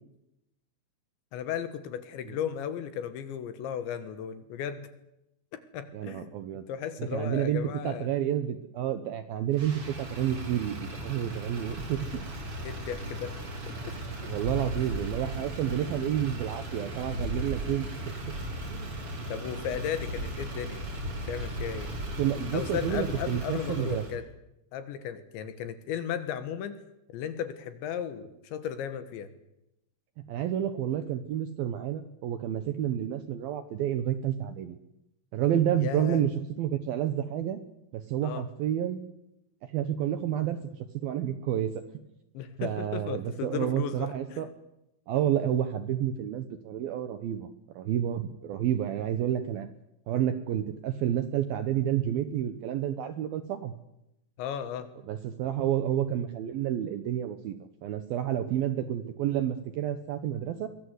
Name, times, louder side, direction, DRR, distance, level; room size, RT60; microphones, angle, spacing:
voice 1, 1.3-4.9 5.5-6.3 6.7-8.1 12.6-13.4 13.7-14.0 14.8-14.9 19.3-20.8 21.3-21.9 22.5-24.3 24.7-26.8 27.1-29.3 35.7-36.2 38.2-38.4 42.3-44.5 54.4-54.9, left 9 dB, 70° left, 11 dB, 3.5 m, -35 dB
voice 2, 5.9-6.6 7.0-12.2 14.3-18.1 18.7-18.9 22.2-24.0 30.3-34.8 35.3-37.6 37.9-39.0 39.6-41.7 42.6-44.5 45.1-47.5 47.8-49.7 50.1-53.7 55.1-57.5 57.8-60.7, right 10 dB, 75° right, 11 dB, 2.2 m, -30 dB
Motor vehicle (road), 9.5-24.1, right 1 dB, 30° right, 4.5 m, -37 dB
23.5 x 21.0 x 8.2 m, 0.85 s
omnidirectional pair, 5.6 m